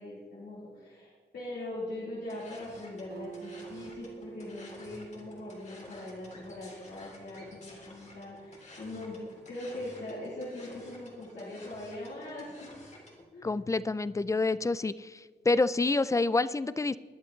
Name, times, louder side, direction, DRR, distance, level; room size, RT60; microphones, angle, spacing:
voice 1, 0.0-9.2 9.5-12.5 13.3-13.5, left 1 dB, 90° left, -8 dB, 4.0 m, -41 dB
sound 1, 2.3-13.2, left 1 dB, 40° left, 3.1 m, -52 dB
Acoustic guitar, 3.1-6.7, right 7 dB, 70° right, 0.7 m, -48 dB
voice 2, 13.4-15.2 15.5-17.0, left 3 dB, 20° left, 16 dB, 0.3 m, -27 dB
20.5 x 12.0 x 3.2 m, 1.4 s
wide cardioid pair, 155°, 17 cm